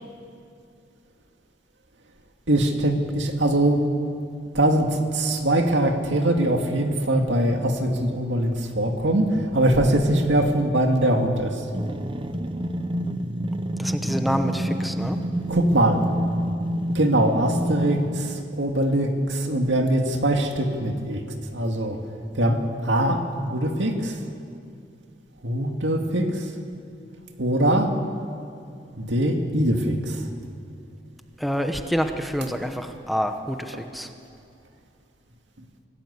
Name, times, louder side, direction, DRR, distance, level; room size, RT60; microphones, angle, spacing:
voice 1, 2.5-3.8 4.5-11.5 15.5-16.0 16.9-21.2 21.5-22.0 22.4-23.2 23.5-24.1 25.4-26.3 27.4-27.9 29.0-30.2, right 1 dB, 85° right, 4 dB, 2.2 m, -22 dB
sound 1, 11.7-18.5, equal, 30° right, 0.9 m, -28 dB
voice 2, 13.8-15.2 31.4-34.1, equal, ahead, 6 dB, 1.0 m, -27 dB
25.5 x 16.5 x 8.3 m, 2.4 s
head